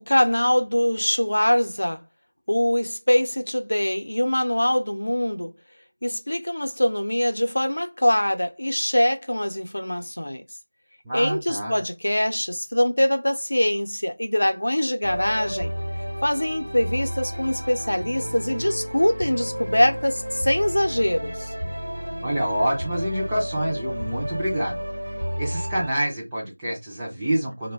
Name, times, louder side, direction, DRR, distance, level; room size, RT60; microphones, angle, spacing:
voice 1, 0.1-2.0 2.5-5.5 6.0-10.4 11.1-15.7 16.2-21.5, left 1 dB, 65° left, 0.6 m, -23 dB
voice 2, 11.0-11.8 22.2-24.8 25.3-27.7, right 1 dB, 5° right, 0.4 m, -27 dB
sound 1, 15.0-25.9, equal, 75° right, 0.9 m, -32 dB
2.6 x 2.1 x 3.3 m
figure-of-eight pair, 175°, 0 cm